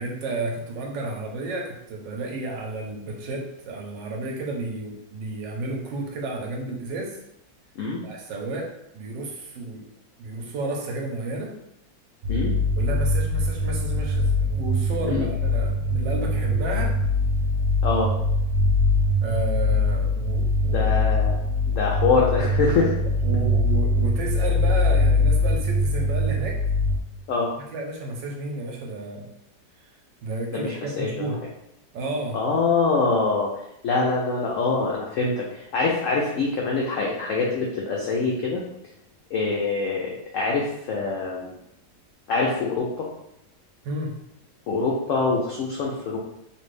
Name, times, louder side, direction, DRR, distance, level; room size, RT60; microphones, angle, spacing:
voice 1, 0.0-7.2 8.0-9.8 10.2-11.6 12.8-17.0 19.2-20.9 23.1-26.6 27.7-29.3 30.2-31.4 31.9-32.4 43.8-44.2, right 2 dB, 90° right, 0 dB, 1.4 m, -32 dB
sound 1, 12.2-27.0, left 1 dB, 70° right, 1.0 m, -22 dB
voice 2, 20.7-21.4 21.7-22.9 27.3-27.5 30.5-31.2 32.3-38.6 39.3-41.5 42.3-43.1 44.7-46.2, left 4 dB, 85° left, -2 dB, 0.7 m, -24 dB
3.2 x 2.5 x 3.2 m, 0.80 s
omnidirectional pair, 1.9 m